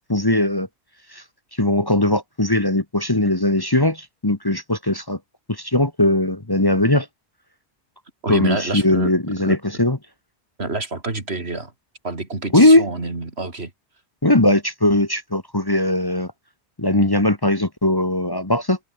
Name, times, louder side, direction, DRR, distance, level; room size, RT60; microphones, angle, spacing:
voice 1, 0.1-0.7 1.1-1.2 1.5-5.2 5.5-7.1 8.3-10.0 12.5-12.9 14.2-16.3 16.8-18.8, left 1 dB, 20° left, 1.5 m, -19 dB
voice 2, 8.2-9.1 9.4-9.6 10.6-11.7 12.0-13.7, right 3 dB, 70° right, 3.5 m, -27 dB
omnidirectional pair, 1.1 m